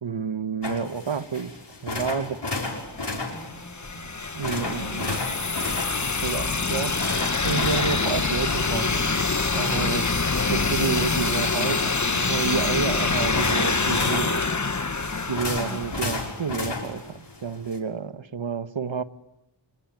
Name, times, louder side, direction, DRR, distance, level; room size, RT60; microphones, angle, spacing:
voice 1, 0.0-1.5 1.8-2.4 4.3-5.2 6.1-7.0 7.4-9.1 9.4-10.1 10.5-14.5 15.3-19.0, right 6 dB, 80° right, 1.2 m, -29 dB
sound 1, 0.6-17.8, left 2 dB, 65° left, 6.1 m, -35 dB
sound 2, 2.9-16.6, left 4 dB, 40° left, 1.2 m, -25 dB
voice 2, 3.3-4.1 4.6-5.6 15.6-15.9, left 1 dB, 25° left, 5.5 m, -41 dB
26.5 x 23.5 x 9.3 m
wide cardioid pair, 50°, 45 cm